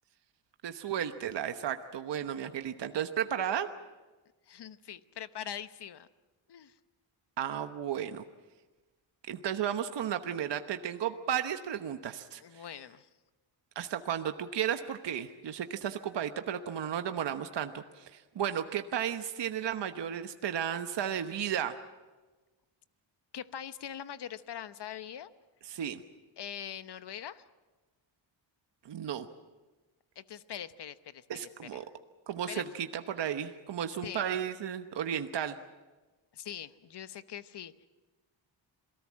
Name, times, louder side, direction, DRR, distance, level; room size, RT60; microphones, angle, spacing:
voice 1, 0.6-3.7 7.4-8.2 9.3-12.6 13.7-21.8 25.7-26.0 28.8-29.3 31.3-31.8 32.3-35.5, right 9 dB, 60° right, 8 dB, 1.1 m, -34 dB
voice 2, 4.5-6.1 6.5-6.7 12.4-13.1 23.3-25.3 26.4-27.4 30.2-31.9 32.5-32.8 34.0-34.2 36.3-37.7, left 9 dB, 60° left, 12 dB, 1.1 m, -43 dB
27.5 x 18.5 x 7.5 m, 1.2 s
cardioid pair, 105°, 46 cm